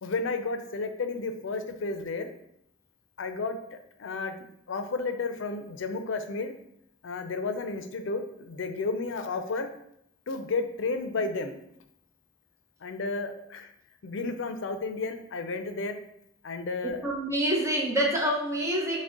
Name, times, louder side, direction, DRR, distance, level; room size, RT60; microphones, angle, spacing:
voice 1, 0.0-2.3 3.2-6.5 7.0-9.7 10.3-11.6 12.8-13.7 14.0-16.0 16.4-17.0, left 3 dB, 80° left, 8 dB, 0.5 m, -32 dB
voice 2, 16.8-19.0, right 1 dB, 15° right, -1 dB, 0.8 m, -27 dB
6.0 x 2.1 x 3.7 m, 0.74 s
head